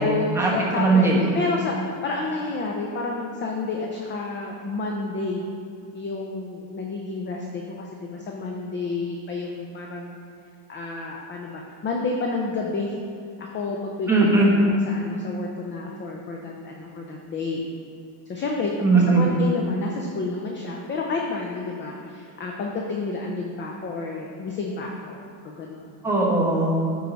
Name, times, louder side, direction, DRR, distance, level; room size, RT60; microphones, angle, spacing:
voice 1, 0.0-5.4 5.9-10.1 10.7-13.0 13.4-17.6 18.3-25.9, left 3 dB, 25° left, 0 dB, 0.5 m, -30 dB
voice 2, 0.8-1.2 14.1-14.5 18.8-19.2 26.0-26.9, right 3 dB, 5° right, -5 dB, 1.2 m, -19 dB
9.6 x 4.7 x 4.0 m, 2.6 s
cardioid pair, 145°, 47 cm